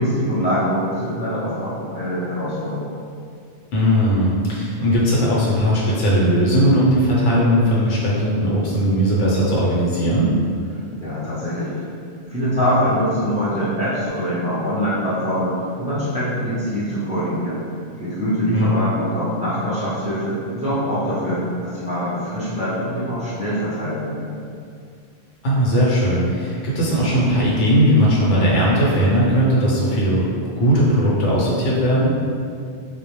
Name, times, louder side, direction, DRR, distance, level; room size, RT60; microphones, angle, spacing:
voice 1, 0.0-2.9 11.0-11.9 12.3-17.7 18.0-24.4, equal, 10° right, -12 dB, 0.3 m, -23 dB
voice 2, 3.7-10.3 18.5-18.8 25.4-30.3 30.6-32.1, equal, 75° left, -6 dB, 0.9 m, -18 dB
2.1 x 2.1 x 2.9 m, 2.3 s
omnidirectional pair, 1.2 m